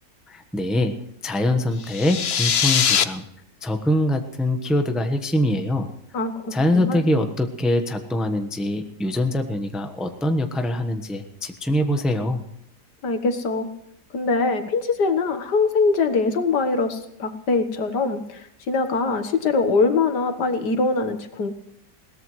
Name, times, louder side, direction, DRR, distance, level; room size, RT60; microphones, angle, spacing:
voice 1, 0.3-0.9 1.2-3.2 3.6-5.9 6.5-12.4, left 1 dB, ahead, 6 dB, 0.9 m, -23 dB
sound 1, 1.8-3.0, left 8 dB, 55° left, 0.8 m, -21 dB
voice 2, 6.1-7.0 13.0-13.7 14.1-18.4 18.7-21.5, left 4 dB, 75° left, 8 dB, 2.0 m, -23 dB
21.0 x 18.0 x 3.2 m, 0.75 s
omnidirectional pair, 1.8 m